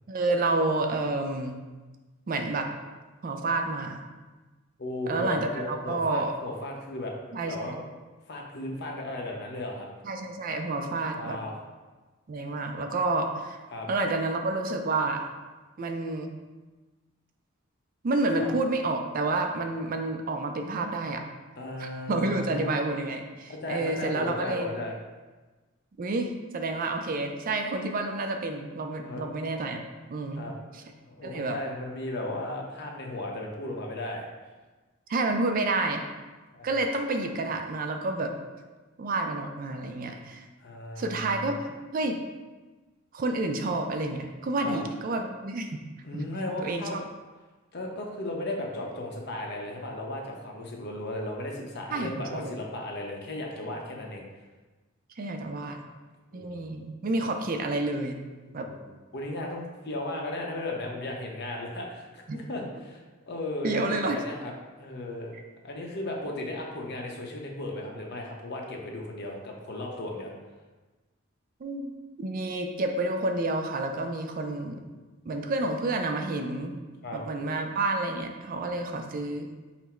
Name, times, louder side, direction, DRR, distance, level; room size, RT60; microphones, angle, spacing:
voice 1, 0.1-1.6 2.3-2.7 3.2-4.0 5.1-6.3 7.3-7.8 10.0-11.4 12.3-13.6 13.9-15.2 15.8-16.4 18.0-21.2 21.8-24.8 26.0-29.8 30.1-30.5 31.2-31.6 35.1-36.0 36.6-38.4 39.0-40.4 41.0-41.5 41.9-42.2 43.1-45.8 46.1-46.2 46.6-47.0 51.9-52.6 55.2-55.8 56.3-58.2 58.5-58.7 62.3-62.4 63.6-64.2 71.6-74.9 75.3-76.7 77.1-79.5, right 2 dB, 45° right, 4 dB, 0.4 m, -29 dB
voice 2, 4.8-7.1 7.5-7.8 8.3-9.9 11.1-11.6 13.7-13.9 18.4-18.5 21.6-22.8 23.5-24.9 29.0-29.2 30.3-30.5 31.1-34.3 36.5-36.8 40.6-41.5 44.6-44.8 46.0-47.0 47.7-54.2 56.3-56.8 58.5-58.9 59.1-63.0 63.3-64.5 64.8-65.4 65.6-70.3 77.0-77.2, left 1 dB, 55° left, 0 dB, 0.7 m, -35 dB
5.7 x 2.0 x 4.3 m, 1.3 s
head